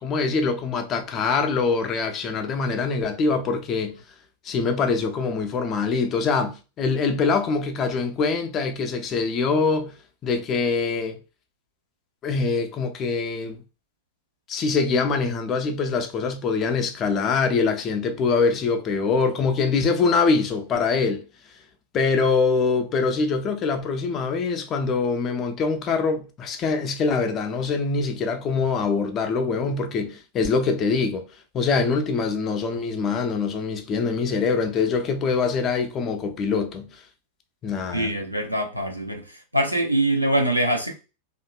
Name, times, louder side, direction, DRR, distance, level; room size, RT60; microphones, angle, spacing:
voice 1, 0.0-4.0 4.4-10.0 10.2-11.2 12.2-13.6 14.5-21.2 21.9-31.3 31.5-37.0 37.6-38.2, left 4 dB, 30° left, 0.5 m, -24 dB
voice 2, 37.9-39.2 39.5-40.9, right 1 dB, 90° right, 0.6 m, -23 dB
2.8 x 2.5 x 2.2 m
figure-of-eight pair, 90°, 0 cm